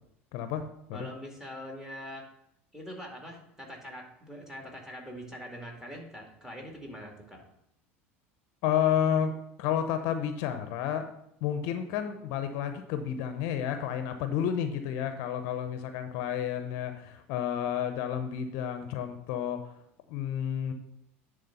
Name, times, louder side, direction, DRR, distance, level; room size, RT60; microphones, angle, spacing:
voice 1, 0.3-0.6 8.6-11.1 11.4-19.7 20.1-20.7, left 9 dB, 60° left, 8 dB, 0.7 m, -31 dB
voice 2, 0.9-2.3 2.7-7.4, equal, 5° right, 1 dB, 2.2 m, -43 dB
10.0 x 3.6 x 5.4 m, 0.75 s
hypercardioid pair, 80°, 7 cm